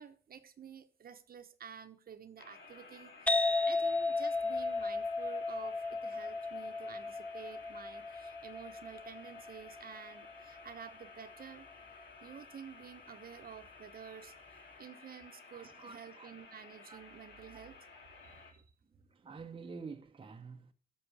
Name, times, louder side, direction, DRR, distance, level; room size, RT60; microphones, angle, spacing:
voice 1, 0.0-3.1 3.6-11.7 12.2-17.8 18.2-18.6, right 8 dB, 50° right, 1.1 m, -51 dB
sound 1, 2.4-18.5, left 4 dB, 60° left, 2.9 m, -55 dB
sound 2, 3.3-10.7, left 3 dB, 5° left, 0.5 m, -35 dB
voice 2, 15.5-16.3 16.9-17.0 17.5-17.7 18.2-18.3 19.1-20.7, right 5 dB, 25° right, 0.9 m, -49 dB
11.0 x 6.3 x 4.8 m
cardioid pair, 90°, 20 cm